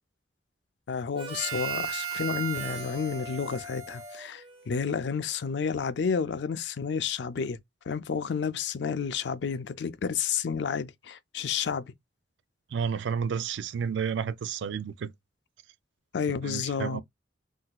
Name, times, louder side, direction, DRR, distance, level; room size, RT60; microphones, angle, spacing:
voice 1, 0.9-7.6 7.9-11.8 16.1-17.0, left 6 dB, 70° left, 0.4 m, -30 dB
Harmonica, 1.1-4.9, right 7 dB, 35° right, 1.3 m, -36 dB
voice 2, 12.7-15.1 16.4-17.0, right 6 dB, 90° right, 0.4 m, -31 dB
3.8 x 2.7 x 2.3 m
head